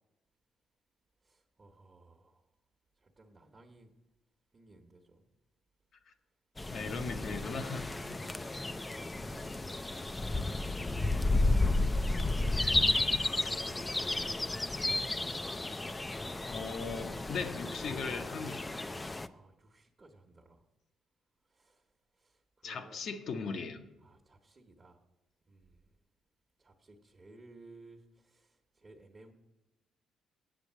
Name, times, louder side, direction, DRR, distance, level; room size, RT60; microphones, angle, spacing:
voice 1, 1.2-2.4 3.0-3.9 4.5-5.3 9.0-9.7 11.4-12.4 13.1-14.0 19.2-20.6 21.5-21.8 22.2-23.0 24.0-25.0 25.5-25.8 26.6-29.3, right 2 dB, 30° right, 1 dB, 1.1 m, -58 dB
sound 1, 6.6-19.3, left 2 dB, 20° left, 0.4 m, -32 dB
voice 2, 6.7-7.9 16.5-18.7 22.6-23.8, left 5 dB, 65° left, 6 dB, 0.9 m, -38 dB
8.4 x 7.1 x 7.4 m, 1.1 s
cardioid pair, 90°, 0 cm